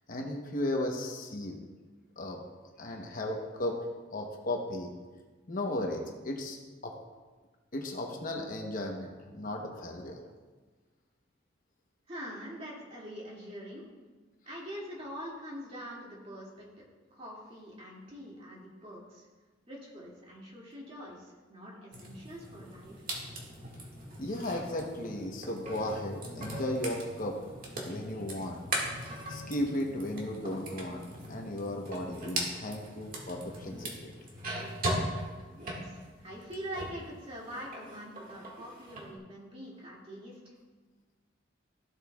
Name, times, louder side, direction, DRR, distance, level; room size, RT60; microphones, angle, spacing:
voice 1, 0.1-1.6 2.2-2.4 2.8-3.8 4.1-5.0 5.5-6.6 6.8-7.0 7.7-10.2 24.2-27.4 27.8-28.7 29.3-34.1, left 1 dB, 45° left, 2 dB, 1.0 m, -35 dB
voice 2, 12.1-13.9 14.5-16.7 17.1-19.3 19.7-23.0 35.5-40.5, equal, 30° right, -4 dB, 2.3 m, -44 dB
sound 1, 21.9-37.1 37.4-39.1, right 1 dB, 50° right, 1.9 m, -39 dB
14.0 x 8.0 x 2.4 m, 1.3 s
head